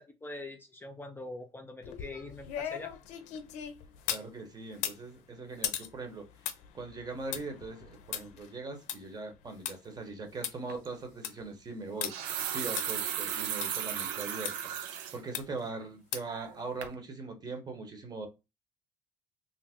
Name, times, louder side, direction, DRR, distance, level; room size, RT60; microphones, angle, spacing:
voice 1, 0.0-2.9, left 2 dB, 15° left, 0.5 m, -43 dB
sound 1, 1.8-4.3 4.7-9.7 10.1-10.2 10.4-10.5 11.0-11.4 12.0-12.1 12.8-12.9 13.6-13.7 14.4-14.5 15.3-15.7 16.1-16.4 16.8-16.9, left 10 dB, 75° left, 0.5 m, -38 dB
voice 2, 4.1-6.3 6.7-14.6 15.1-18.3, right 3 dB, 35° right, 1.0 m, -41 dB
sound 2, 10.7-10.9 11.9-15.2 15.6-15.7 16.3-16.6 16.8-17.0, right 9 dB, 85° right, 0.5 m, -35 dB
2.6 x 2.0 x 3.5 m
supercardioid pair, 75°, 12 cm